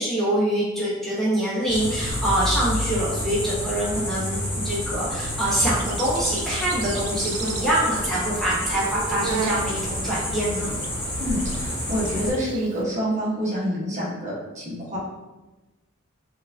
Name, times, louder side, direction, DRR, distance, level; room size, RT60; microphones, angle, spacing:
voice 1, 0.0-10.7, right 1 dB, ahead, -8 dB, 0.8 m, -25 dB
sound 1, 1.7-12.3, left 1 dB, 25° left, 1.1 m, -29 dB
sound 2, 2.1-4.3, equal, 50° left, 0.5 m, -32 dB
Insect, 5.2-12.8, right 7 dB, 85° right, 0.3 m, -36 dB
voice 2, 11.2-15.0, equal, 35° right, -6 dB, 0.9 m, -27 dB
4.5 x 2.3 x 2.5 m, 1.1 s
head